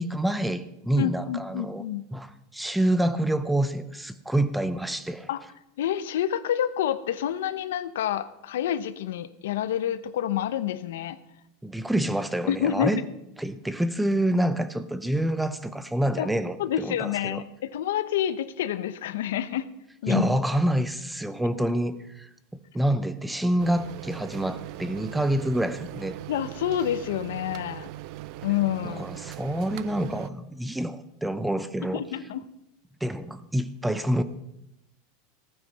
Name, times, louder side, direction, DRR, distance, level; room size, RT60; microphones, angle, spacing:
voice 1, 0.0-1.8 2.1-5.3 11.6-13.0 13.4-17.4 20.1-22.3 22.7-26.2 28.8-32.0 33.0-34.2, right 1 dB, 5° right, 13 dB, 0.6 m, -27 dB
voice 2, 1.0-2.0 5.3-5.4 5.8-11.2 12.5-13.0 16.2-16.3 16.6-19.7 20.0-20.3 26.3-27.9 28.4-29.1 31.9-32.4, left 10 dB, 90° left, 14 dB, 0.8 m, -28 dB
sound 1, 23.6-30.3, right 15 dB, 50° right, 0.5 m, -40 dB
15.5 x 9.4 x 5.4 m, 0.86 s
supercardioid pair, 155°, 0 cm